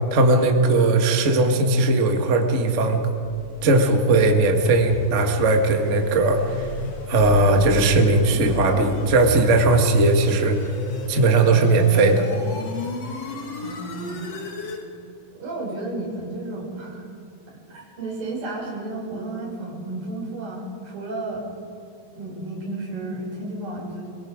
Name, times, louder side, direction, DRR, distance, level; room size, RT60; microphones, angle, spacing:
voice 1, 0.1-3.0 3.6-6.7 7.1-10.6 11.1-12.3, right 2 dB, 40° right, 3 dB, 1.0 m, -18 dB
sound 1, 2.7-14.8, left 3 dB, 50° left, 2.9 m, -32 dB
voice 2, 13.6-14.3 15.3-17.1 17.7-21.5 22.1-24.1, right 2 dB, 65° right, -4 dB, 7.8 m, -32 dB
24.5 x 22.5 x 5.1 m, 2.6 s
omnidirectional pair, 4.4 m